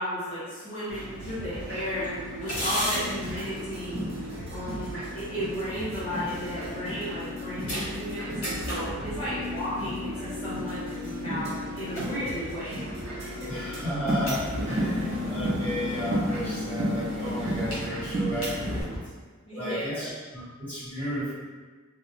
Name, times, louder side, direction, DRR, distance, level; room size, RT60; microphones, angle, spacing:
voice 1, 0.0-2.1 2.4-4.0 4.5-12.8 13.2-13.6 19.5-20.1, equal, 25° left, -13 dB, 0.5 m, -34 dB
sound 1, 0.9-18.9, left 1 dB, 85° left, 1.0 m, -35 dB
sound 2, 2.6-18.8, right 1 dB, 30° right, 0.3 m, -34 dB
voice 2, 13.5-18.9 19.5-21.3, equal, 10° left, -14 dB, 1.1 m, -33 dB
2.2 x 2.0 x 3.0 m, 1.4 s
head